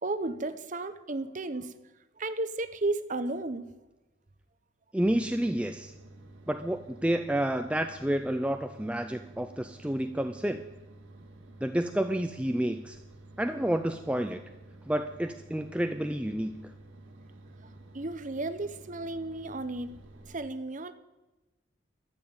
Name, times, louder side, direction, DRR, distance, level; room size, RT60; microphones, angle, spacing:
voice 1, 0.0-1.7 2.2-3.7 17.6-20.0 20.3-20.9, right 2 dB, 40° right, 11 dB, 0.8 m, -34 dB
voice 2, 4.9-5.9 6.5-10.6 11.6-13.0 13.4-14.4 14.9-16.7, right 1 dB, 5° right, 7 dB, 0.4 m, -30 dB
sound 1, 5.0-20.4, right 2 dB, 70° right, 2.0 m, -51 dB
13.5 x 7.4 x 8.8 m, 1.1 s
head